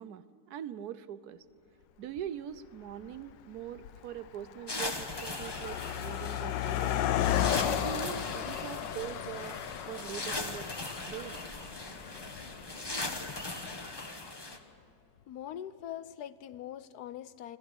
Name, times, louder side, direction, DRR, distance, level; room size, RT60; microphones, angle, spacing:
voice 1, 0.0-1.4 2.0-7.1 7.6-9.6 9.9-10.8 11.1-11.4, right 10 dB, 70° right, 15 dB, 1.1 m, -42 dB
Car passing by, 2.2-2.3 3.1-3.3 3.6-14.0, left 11 dB, 90° left, 1.4 m, -34 dB
sound 1, 4.7-14.6, left 2 dB, 15° left, 1.0 m, -40 dB
sound 2, 6.9-13.5, equal, 20° right, 2.5 m, -53 dB
voice 2, 15.3-17.6, left 11 dB, 70° left, 15 dB, 1.1 m, -42 dB
26.0 x 13.0 x 9.9 m, 2.7 s
omnidirectional pair, 1.9 m